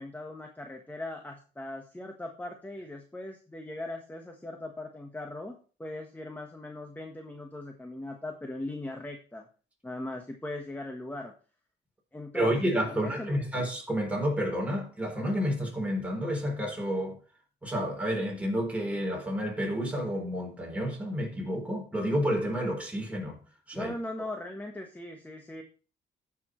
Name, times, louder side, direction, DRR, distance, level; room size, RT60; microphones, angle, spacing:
voice 1, 0.0-9.5 9.8-11.3 12.1-12.5 12.9-13.4 23.7-25.6, left 1 dB, 10° left, 1.3 m, -39 dB
voice 2, 12.3-17.2 17.6-23.4 23.7-23.9, equal, 5° right, 3.9 m, -30 dB
14.5 x 6.0 x 3.2 m
cardioid pair, 90°, 20 cm